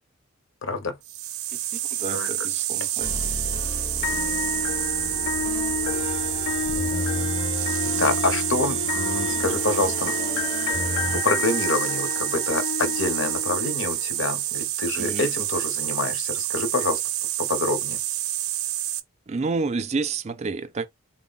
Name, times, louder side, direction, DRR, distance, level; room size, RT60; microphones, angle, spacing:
voice 1, 0.6-1.0 2.1-2.3 7.9-10.1 11.1-17.0 17.4-18.0, left 3 dB, 65° left, 0.8 m, -27 dB
sound 1, 1.0-19.0, right 13 dB, 90° right, 0.5 m, -28 dB
voice 2, 1.5-3.1 15.0-15.3 19.3-20.9, right 4 dB, 30° right, 0.4 m, -30 dB
sound 2, 3.0-11.2, left 2 dB, 25° left, 0.5 m, -33 dB
sound 3, 4.0-14.1, left 7 dB, 85° left, 0.3 m, -31 dB
3.8 x 2.1 x 3.9 m
head